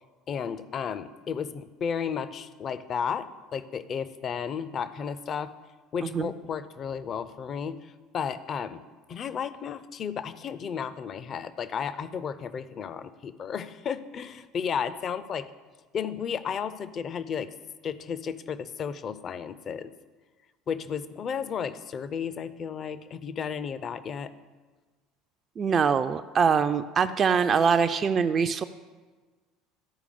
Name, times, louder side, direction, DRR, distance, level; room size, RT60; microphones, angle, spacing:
voice 1, 0.3-5.5 5.9-8.8 9.1-15.5 15.9-17.5 17.8-19.9 20.7-24.3, left 7 dB, 40° left, 14 dB, 0.5 m, -33 dB
voice 2, 25.6-28.6, right 6 dB, 35° right, 9 dB, 0.3 m, -23 dB
12.0 x 4.7 x 5.1 m, 1.4 s
figure-of-eight pair, 65°, 0 cm